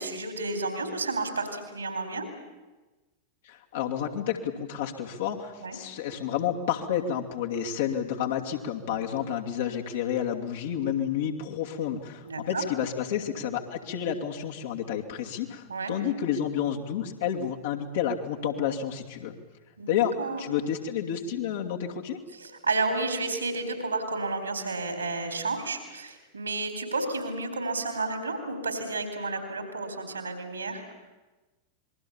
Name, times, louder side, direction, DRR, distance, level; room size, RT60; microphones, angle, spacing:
voice 1, 0.0-2.2 5.6-5.8 8.9-9.0 12.2-12.6 15.7-15.9 19.8-20.4 22.3-30.8, right 3 dB, 75° right, 7 dB, 4.1 m, -31 dB
voice 2, 3.4-19.4 19.9-20.1 20.4-22.2, left 9 dB, 60° left, 1 dB, 2.7 m, -30 dB
27.0 x 22.0 x 7.2 m, 1.2 s
figure-of-eight pair, 90°, 0 cm